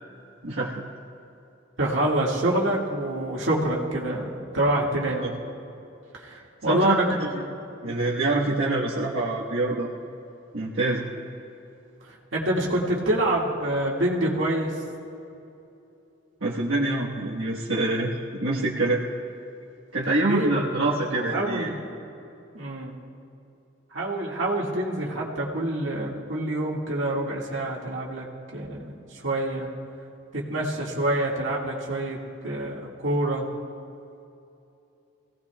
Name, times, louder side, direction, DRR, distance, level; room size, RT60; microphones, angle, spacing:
voice 1, 0.4-0.8 5.2-5.3 6.7-7.0 7.3-7.4 7.8-9.9 10.5-11.1 16.4-19.0 19.9-21.7, right 2 dB, 90° right, -5 dB, 1.3 m, -25 dB
voice 2, 1.8-5.3 6.1-7.2 12.0-14.8 20.1-21.9 22.5-23.0 23.9-28.3 28.5-29.7 30.3-32.2 32.4-33.5, right 1 dB, 70° right, -3 dB, 2.0 m, -26 dB
24.0 x 17.0 x 2.3 m, 2.8 s
head